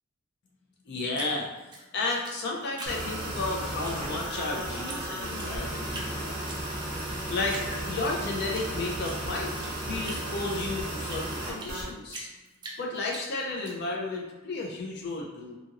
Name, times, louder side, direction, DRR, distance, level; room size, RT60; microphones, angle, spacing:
voice 1, 0.9-1.5 1.9-6.4 7.3-9.5 9.8-12.3 12.8-15.6, left 3 dB, 50° left, -2 dB, 0.4 m, -33 dB
Drip, 1.1-3.4 3.8-4.5 4.9-5.0 5.3-6.1 6.5-7.1 7.5-8.7 9.0-11.8 12.1-13.7, right 2 dB, 20° right, 0.4 m, -42 dB
sound 1, 2.9-11.9, right 1 dB, 40° right, 0.9 m, -34 dB
2.7 x 2.5 x 2.8 m, 1.2 s
head